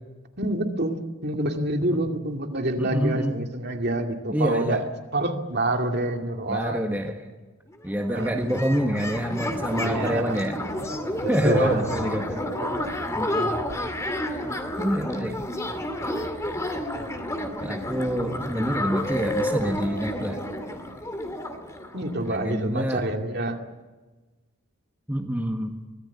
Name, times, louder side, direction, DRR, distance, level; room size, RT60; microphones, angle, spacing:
voice 1, 0.4-7.0 8.1-8.3 9.7-10.3 11.2-12.2 12.6-12.9 21.9-23.6, right 1 dB, 50° right, 3 dB, 2.4 m, -27 dB
voice 2, 2.8-3.4 4.3-4.8 6.5-7.2 7.8-10.6 11.3-12.4 13.1-13.6 14.8-15.4 17.6-20.4 22.3-23.1 25.1-25.8, equal, 10° right, 2 dB, 1.5 m, -27 dB
sound 1, 7.7-7.8 8.0-22.6, left 1 dB, 15° left, 2.3 m, -30 dB
24.5 x 18.5 x 8.4 m, 1.2 s
head